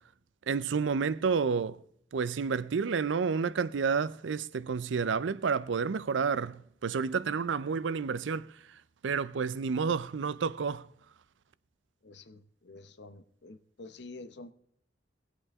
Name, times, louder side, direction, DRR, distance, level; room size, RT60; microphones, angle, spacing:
voice 1, 0.5-1.8 2.1-10.9, right 5 dB, 85° right, 0.5 m, -30 dB
voice 2, 12.0-14.5, left 2 dB, 65° left, 0.8 m, -48 dB
19.5 x 8.3 x 3.5 m
head